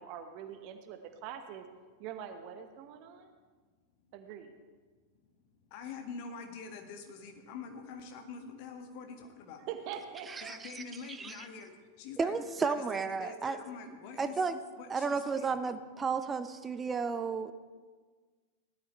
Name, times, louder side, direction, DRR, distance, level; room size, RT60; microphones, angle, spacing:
voice 1, 0.0-1.6 2.0-3.3 4.1-4.5 9.7-10.5, right 8 dB, 45° right, 7 dB, 1.2 m, -43 dB
voice 2, 5.6-9.7 10.5-14.4 14.8-15.5, left 5 dB, 45° left, 5 dB, 1.6 m, -45 dB
voice 3, 10.3-10.8 11.1-11.4 12.2-13.6 14.2-14.6 14.9-17.5, right 5 dB, 15° right, 11 dB, 0.7 m, -33 dB
18.0 x 12.0 x 3.2 m, 1.5 s
figure-of-eight pair, 90°, 0 cm